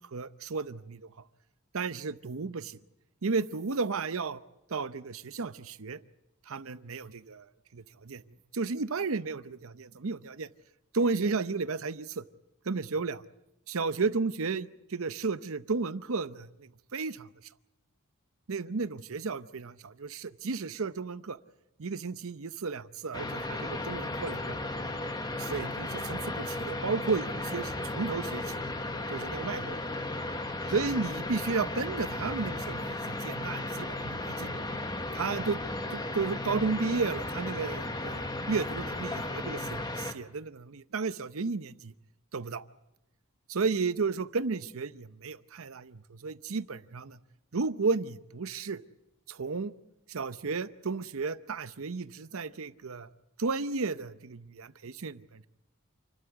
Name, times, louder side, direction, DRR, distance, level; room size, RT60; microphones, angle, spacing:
voice 1, 0.1-1.1 1.7-2.8 3.2-4.4 4.7-6.0 6.5-8.2 8.5-10.5 10.9-12.2 12.6-13.2 13.7-17.3 18.5-21.4 21.8-24.6 25.4-28.6 29.1-29.8 30.7-34.7 35.1-35.6 35.9-41.9 42.3-42.6 43.5-47.2 47.5-48.8 49.3-49.7 50.1-53.1 53.4-55.5, right 4 dB, 65° right, 14 dB, 0.8 m, -33 dB
sound 1, 23.1-40.1, left 2 dB, 20° left, 1.3 m, -35 dB
28.5 x 12.5 x 8.3 m, 0.92 s
head